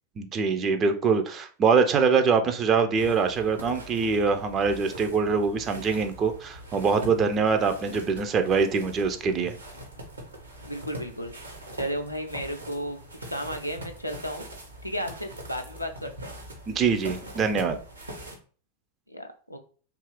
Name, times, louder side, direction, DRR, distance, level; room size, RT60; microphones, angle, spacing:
voice 1, 0.2-9.6 16.7-17.8, right 5 dB, 30° right, 7 dB, 0.3 m, -24 dB
sound 1, 2.9-18.4, right 1 dB, 80° right, 0.7 m, -42 dB
voice 2, 10.6-13.0 13.3-14.4 14.8-16.3 19.1-19.6, equal, 90° left, 5 dB, 0.4 m, -34 dB
2.7 x 2.3 x 3.0 m, 0.41 s
figure-of-eight pair, 90°, 0 cm